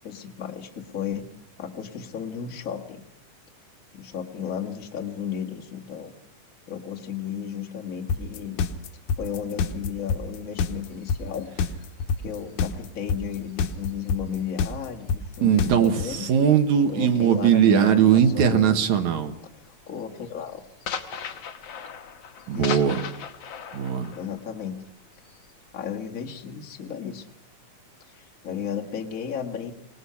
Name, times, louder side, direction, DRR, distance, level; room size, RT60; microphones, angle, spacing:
voice 1, 0.0-1.3 1.6-3.0 3.9-6.1 6.7-8.6 9.2-11.5 12.2-16.3 16.9-18.8 19.6-20.6 22.5-22.9 24.1-24.8 25.7-27.2 28.0-29.7, left 8 dB, 35° left, 0 dB, 1.4 m, -34 dB
sound 1, 8.1-16.1, left 5 dB, 85° left, 2.7 m, -25 dB
sound 2, 10.8-14.6 15.0-18.4 18.6-19.0 19.4-25.8, left 7 dB, 60° left, 2.0 m, -40 dB
voice 2, 15.4-19.3 22.5-23.0 23.7-24.1, right 8 dB, 65° right, 6 dB, 2.6 m, -20 dB
25.0 x 18.5 x 5.8 m, 0.82 s
omnidirectional pair, 3.8 m